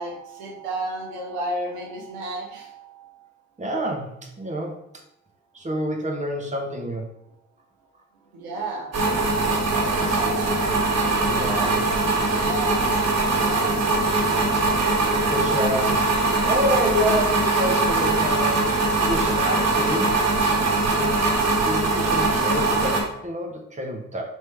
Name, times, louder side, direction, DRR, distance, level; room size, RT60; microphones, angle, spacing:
voice 1, 0.0-3.3 8.2-9.2 9.6-11.8 12.3-13.0 13.3-13.8, right 2 dB, 80° right, -1 dB, 1.0 m, -34 dB
voice 2, 3.6-4.8 5.5-7.1 11.3-11.8 15.2-16.1 16.4-18.7 19.0-20.2 20.5-21.0 21.6-24.2, equal, 20° right, 1 dB, 1.1 m, -28 dB
sound 1, 8.9-23.0, right 2 dB, 45° right, 1.4 m, -21 dB
4.2 x 3.3 x 3.2 m, 0.77 s
hypercardioid pair, 50°, 36 cm